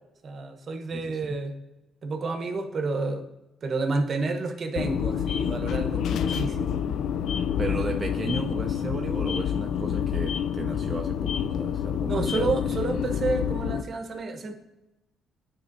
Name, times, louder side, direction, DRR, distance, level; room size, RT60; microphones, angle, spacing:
voice 1, 0.2-1.5 2.0-3.3 3.6-6.8 12.1-14.5, right 3 dB, 45° right, 6 dB, 0.9 m, -30 dB
voice 2, 0.9-1.4 7.6-12.8, right 3 dB, 25° right, 3 dB, 0.4 m, -34 dB
sound 1, 4.8-13.8, left 8 dB, 70° left, 0.3 m, -28 dB
9.4 x 4.3 x 2.6 m, 0.98 s
cardioid pair, 80°, 0 cm